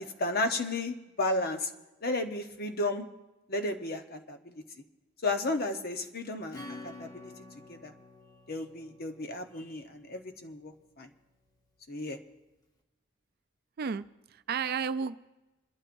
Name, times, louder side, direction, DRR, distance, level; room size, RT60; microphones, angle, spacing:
voice 1, 0.2-1.7 2.0-3.1 3.5-4.6 5.2-6.6 6.8-7.3 7.7-7.9 8.5-11.1 11.9-12.2, left 2 dB, 50° left, 6 dB, 1.0 m, -33 dB
Acoustic guitar / Strum, 6.5-10.8, left 2 dB, 20° left, 1.2 m, -49 dB
voice 2, 13.8-15.2, right 6 dB, 50° right, 13 dB, 0.4 m, -33 dB
27.5 x 12.0 x 2.6 m, 1.1 s
head